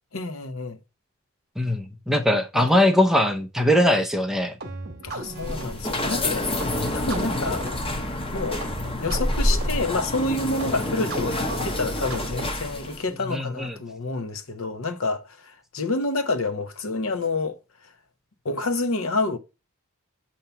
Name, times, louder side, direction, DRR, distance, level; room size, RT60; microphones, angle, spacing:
voice 1, 0.1-0.8 2.5-2.6 5.0-6.5 6.9-7.6 8.3-8.6 8.9-17.6 18.4-19.4, left 3 dB, 65° left, 0.8 m, -28 dB
voice 2, 1.6-4.5 13.3-13.8, left 1 dB, ahead, 0.5 m, -21 dB
sound 1, 4.6-12.8, right 2 dB, 45° right, 1.1 m, -38 dB
sound 2, 5.2-13.1, left 1 dB, 25° left, 0.8 m, -28 dB
6.9 x 2.8 x 5.4 m
head